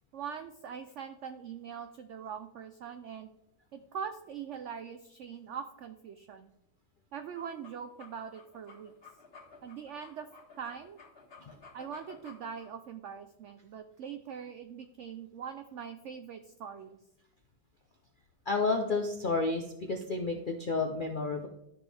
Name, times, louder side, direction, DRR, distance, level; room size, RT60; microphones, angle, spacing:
voice 1, 0.1-3.3 3.7-6.5 7.1-8.9 9.6-10.3 10.6-11.0 11.7-17.0, right 7 dB, 80° right, 9 dB, 0.6 m, -42 dB
sound 1, 7.2-12.7, left 4 dB, 35° left, 1.8 m, -54 dB
voice 2, 18.5-21.5, left 3 dB, 65° left, 4 dB, 0.4 m, -31 dB
12.0 x 6.1 x 3.4 m, 0.84 s
omnidirectional pair, 1.8 m